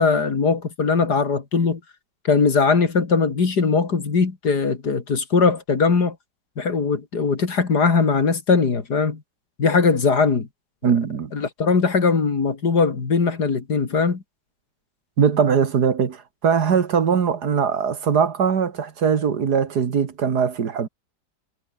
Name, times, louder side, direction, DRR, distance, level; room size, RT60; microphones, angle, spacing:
voice 1, 0.0-1.8 2.2-6.2 6.6-9.2 9.6-10.5 11.3-14.2, left 4 dB, 60° left, 3.1 m, -20 dB
voice 2, 10.8-11.3 15.2-20.9, right 7 dB, 65° right, 2.1 m, -21 dB
omnidirectional pair, 1.9 m